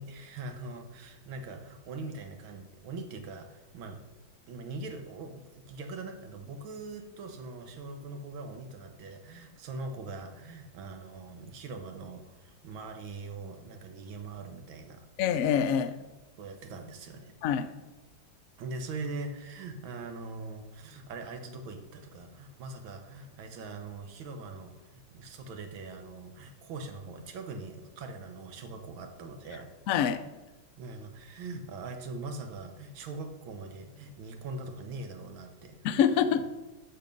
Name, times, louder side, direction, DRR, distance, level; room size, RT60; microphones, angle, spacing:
voice 1, 0.0-4.0 4.5-15.1 16.4-17.3 18.6-29.7 30.8-35.8 36.2-36.4, right 3 dB, 85° right, 5 dB, 1.8 m, -42 dB
voice 2, 15.2-16.0 17.4-17.7 29.9-30.2 35.8-36.4, left 8 dB, 80° left, 10 dB, 0.7 m, -25 dB
7.2 x 6.8 x 5.2 m, 1.1 s
omnidirectional pair, 2.1 m